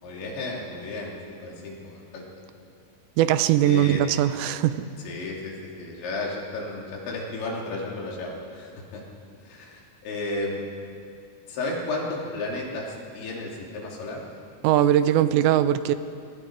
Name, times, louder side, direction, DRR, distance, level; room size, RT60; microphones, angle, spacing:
voice 1, 0.0-2.2 3.7-4.0 5.0-5.5 5.8-9.0 9.5-10.6 11.5-14.2, left 2 dB, 80° left, -2 dB, 5.3 m, -33 dB
voice 2, 3.2-4.7 14.6-16.0, right 11 dB, 80° right, 12 dB, 3.0 m, -20 dB
26.5 x 23.0 x 4.8 m, 2.4 s
omnidirectional pair, 5.2 m